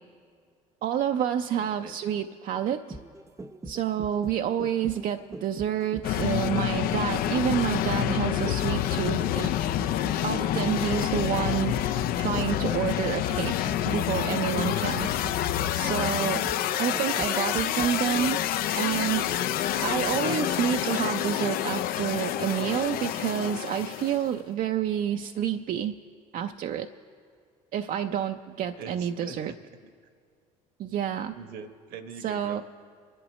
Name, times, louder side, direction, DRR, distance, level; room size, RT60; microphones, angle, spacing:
voice 1, 0.8-3.0 3.7-9.5 10.2-11.9 12.2-15.1 15.7-16.4 16.8-18.4 18.7-19.4 19.7-25.9 26.3-26.9 27.7-29.5 30.8-31.4 32.2-32.6, right 9 dB, 50° right, 6 dB, 0.5 m, -29 dB
voice 2, 1.6-2.0 12.0-12.4 16.7-17.1 18.3-18.4 22.7-22.9 28.7-29.6 31.3-32.6, right 5 dB, 65° right, 9 dB, 1.1 m, -44 dB
sound 1, 2.7-18.5 18.9-19.0, right 2 dB, 15° right, 0.7 m, -41 dB
sound 2, 6.0-24.3, left 12 dB, 60° left, 0.5 m, -28 dB
25.0 x 11.0 x 3.2 m, 2.2 s
hypercardioid pair, 70°, 17 cm